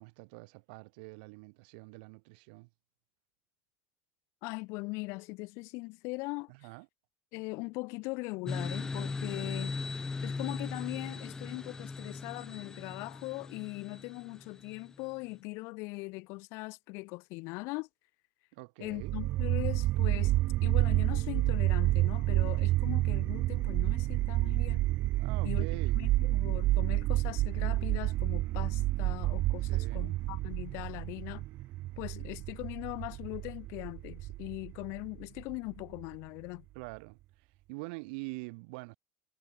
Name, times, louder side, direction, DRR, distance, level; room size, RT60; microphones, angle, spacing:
voice 1, 0.0-2.7 6.5-6.9 18.5-19.1 25.2-26.0 29.7-30.2 36.7-37.2 37.7-39.0, right 29 dB, 75° right, 4.5 m, -45 dB
voice 2, 4.4-6.5 7.3-9.8 10.1-17.9 18.8-20.4 20.6-24.8 25.4-25.6 25.9-31.4 32.0-36.6, left 27 dB, 55° left, 3.4 m, -40 dB
sound 1, 8.5-15.0, left 4 dB, 10° left, 2.3 m, -39 dB
sound 2, 19.0-36.0, right 17 dB, 40° right, 0.4 m, -29 dB
cardioid pair, 170°, 6 cm